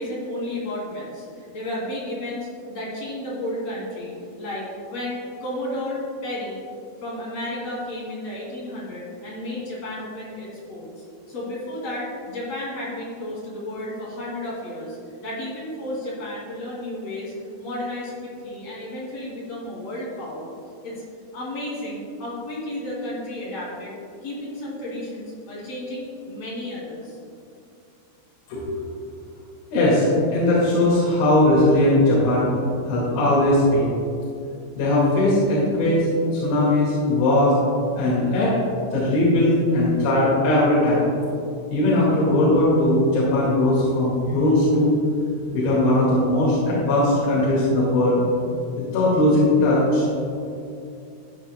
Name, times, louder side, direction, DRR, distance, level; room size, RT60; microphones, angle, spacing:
voice 1, 0.0-6.6 7.0-15.0 15.2-20.5 20.8-21.0 21.3-23.9 24.2-27.2, left 1 dB, 40° left, -5 dB, 3.0 m, -32 dB
voice 2, 29.7-30.0 30.3-32.5 32.9-33.9 34.8-36.1 36.3-37.5 38.0-38.5 38.9-41.0 41.7-45.0 45.5-48.2 48.9-50.0, left 1 dB, 75° left, -8 dB, 4.5 m, -19 dB
14.5 x 9.7 x 2.3 m, 2.5 s
omnidirectional pair, 5.6 m